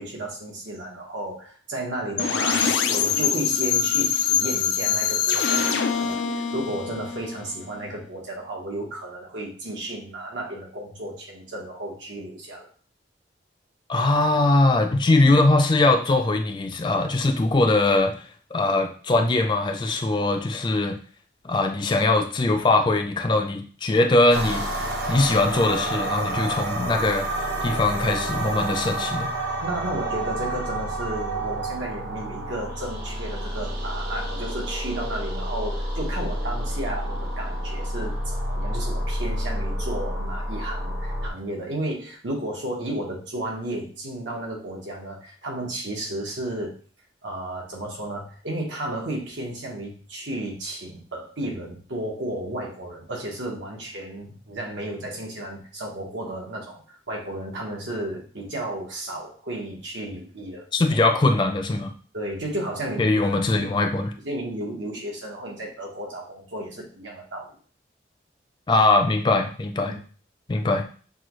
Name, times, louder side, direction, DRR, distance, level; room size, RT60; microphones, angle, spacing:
voice 1, 0.0-12.7 29.6-46.8 47.2-60.7 62.1-63.1 63.5-63.9 64.2-67.5 69.8-70.0, right 1 dB, 85° right, -1 dB, 1.3 m, -33 dB
sound 1, 2.2-8.0, left 7 dB, 85° left, 0.4 m, -24 dB
voice 2, 13.9-21.0 21.4-29.3 60.7-61.9 63.0-64.1 68.7-70.0 70.5-70.8, left 2 dB, 25° left, 5 dB, 0.3 m, -21 dB
sound 2, 24.3-41.3, right 1 dB, 65° right, 0.9 m, -29 dB
6.0 x 2.3 x 3.0 m, 0.41 s
head